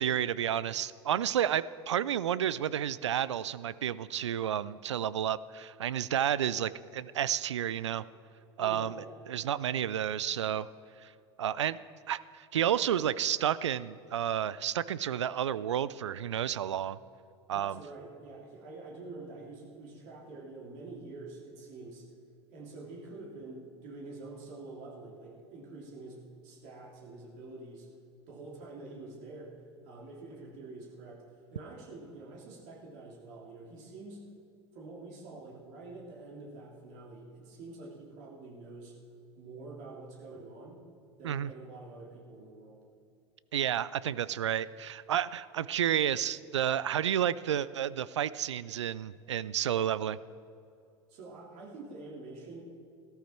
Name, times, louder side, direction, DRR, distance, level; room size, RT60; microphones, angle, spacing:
voice 1, 0.0-8.0 8.6-9.0 9.3-10.7 11.0-11.1 11.4-11.8 12.1-17.0 17.5-17.8 41.2-41.5 43.5-50.2, right 10 dB, 85° right, 18 dB, 0.4 m, -31 dB
voice 2, 8.6-9.2 17.5-22.0 22.5-27.9 28.3-29.6 29.8-31.2 31.5-34.2 34.7-39.0 39.4-40.8 41.2-42.8 51.1-52.6, right 3 dB, 55° right, -2 dB, 3.1 m, -47 dB
15.0 x 13.0 x 4.4 m, 2.5 s
hypercardioid pair, 80°, 15 cm